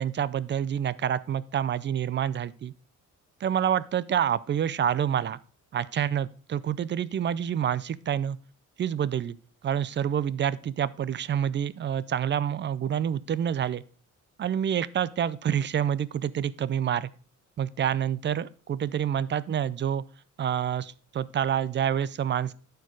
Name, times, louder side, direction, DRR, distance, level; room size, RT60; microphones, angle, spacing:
voice 1, 0.0-2.7 3.4-5.4 5.7-8.4 8.8-9.4 9.6-13.8 14.4-17.1 17.6-20.0 20.4-22.5, right 9 dB, 35° right, 18 dB, 0.5 m, -27 dB
12.0 x 4.6 x 4.7 m, 0.41 s
cardioid pair, 130°, 32 cm